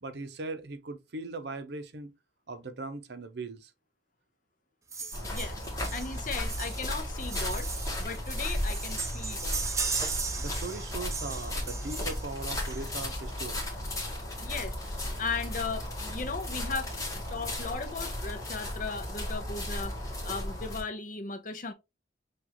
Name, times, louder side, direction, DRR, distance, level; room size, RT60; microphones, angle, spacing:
voice 1, 0.0-2.1 2.5-3.7 10.4-13.7, right 3 dB, 60° right, 0.7 m, -39 dB
sound 1, 4.9-13.2 14.3-14.4 14.7-14.8 15.1-15.2 15.6-16.2 16.6-16.7, right 5 dB, 15° right, 0.5 m, -37 dB
sound 2, 5.1-20.8, left 1 dB, 15° left, 1.2 m, -35 dB
voice 2, 5.3-5.6 5.9-7.7 8.0-9.6 14.4-21.7, left 4 dB, 40° left, 0.6 m, -37 dB
6.0 x 2.4 x 2.9 m
head